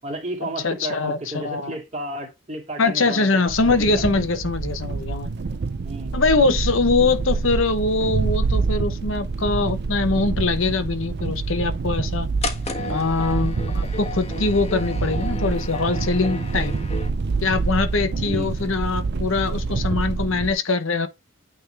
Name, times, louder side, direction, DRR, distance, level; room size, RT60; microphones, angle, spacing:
voice 1, 0.0-3.9 5.8-6.6 18.2-18.6, right 1 dB, 35° right, 2.5 m, -33 dB
voice 2, 0.6-1.8 2.8-5.3 6.1-12.3 12.9-16.7 17.4-21.1, left 3 dB, 65° left, 0.9 m, -23 dB
sound 1, 3.5-20.5, right 4 dB, 50° right, 0.4 m, -26 dB
sound 2, 12.4-17.1, left 3 dB, 30° left, 1.2 m, -33 dB
9.0 x 3.6 x 3.3 m
head